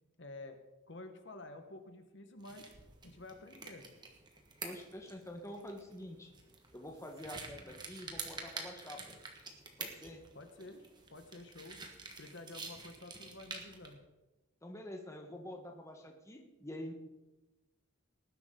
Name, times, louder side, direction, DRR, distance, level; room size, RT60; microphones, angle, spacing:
voice 1, 0.2-0.6 0.9-2.7 3.0-3.9 10.3-11.8 12.2-14.0, left 2 dB, 60° left, 7 dB, 1.3 m, -50 dB
sound 1, 2.4-13.9, right 4 dB, 20° right, 1.5 m, -49 dB
voice 2, 4.6-6.3 6.7-9.2 9.8-10.2 14.6-16.9, left 1 dB, 15° left, 3 dB, 1.2 m, -47 dB
19.0 x 10.5 x 3.8 m, 1.1 s
head